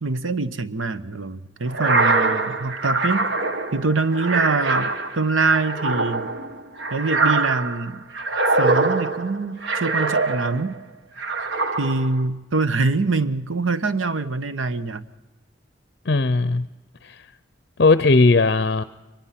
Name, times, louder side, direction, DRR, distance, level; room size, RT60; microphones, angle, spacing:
voice 1, 0.0-3.3 3.7-6.3 6.9-8.0 8.6-10.8 11.8-15.0, right 3 dB, 85° right, 12 dB, 1.0 m, -24 dB
sound 1, 1.7-10.8 11.2-12.2, right 3 dB, 60° right, 1.3 m, -23 dB
voice 2, 16.1-16.7 17.0-17.2 17.8-18.8, left 3 dB, 55° left, 13 dB, 0.6 m, -17 dB
23.0 x 19.5 x 5.8 m, 1.1 s
head